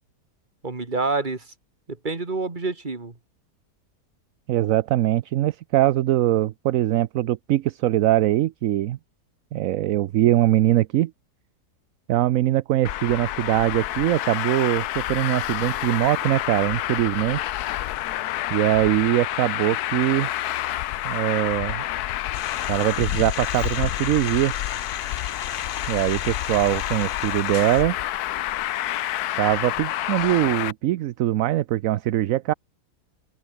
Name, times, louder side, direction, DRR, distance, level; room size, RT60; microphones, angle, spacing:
voice 1, 0.6-1.5 1.9-3.1, right 3 dB, 30° right, 2.3 m, -27 dB
voice 2, 4.5-9.0 9.5-11.1 12.1-17.6 18.5-20.3 21.0-21.8 22.7-24.5 25.9-28.0 29.4-32.5, right 14 dB, 65° right, 0.9 m, -22 dB
Traffic noise roadway noise, 12.8-30.7, left 14 dB, 75° left, 1.1 m, -28 dB
sound 1, 22.3-27.8, left 8 dB, 45° left, 0.7 m, -36 dB
open air
omnidirectional pair, 1.7 m